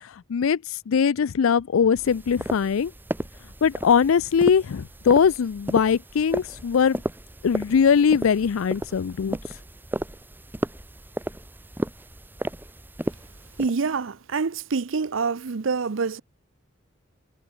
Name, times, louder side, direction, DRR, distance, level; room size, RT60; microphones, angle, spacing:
voice 1, 0.3-2.9 3.6-7.0 7.4-9.4, left 6 dB, 90° left, 0.4 m, -21 dB
sound 1, 2.0-13.7, right 1 dB, 10° right, 0.8 m, -34 dB
voice 2, 13.6-16.2, right 4 dB, 75° right, 0.6 m, -26 dB
head